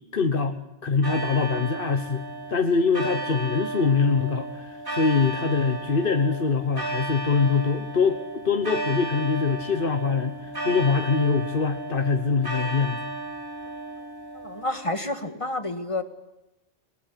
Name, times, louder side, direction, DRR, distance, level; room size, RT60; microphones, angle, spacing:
voice 1, 0.1-2.2 2.5-13.0, left 5 dB, 60° left, 7 dB, 1.4 m, -24 dB
sound 1, 1.0-14.9, right 2 dB, 20° right, 4.8 m, -34 dB
voice 2, 14.3-16.0, left 2 dB, 30° left, 8 dB, 2.0 m, -29 dB
20.0 x 20.0 x 9.9 m, 0.97 s
omnidirectional pair, 1.0 m